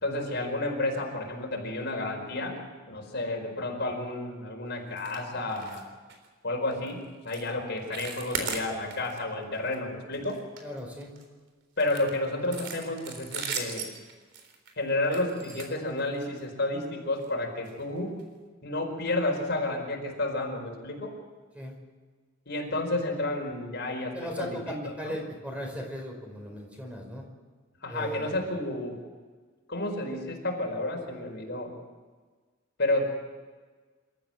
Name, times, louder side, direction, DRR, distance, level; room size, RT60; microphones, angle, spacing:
voice 1, 0.0-2.6 2.9-5.8 6.4-10.4 11.8-13.9 14.8-18.1 18.6-21.1 22.5-24.8 25.0-25.2 27.8-29.0 29.7-31.7 32.8-33.1, left 2 dB, 55° left, 1 dB, 4.7 m, -31 dB
sound 1, 5.0-5.2 5.5-5.8 6.1-6.3 6.7-6.9 7.3-7.5 7.8-9.2 9.5-9.8 10.1-11.2 11.8-16.4 17.1-17.3 17.7-17.8 18.2-18.3, right 5 dB, 60° right, 3.8 m, -38 dB
voice 2, 10.6-11.1 21.5-21.7 24.0-27.2 27.9-28.4, equal, 5° right, 0 dB, 5.3 m, -37 dB
27.5 x 14.0 x 7.8 m, 1.4 s
head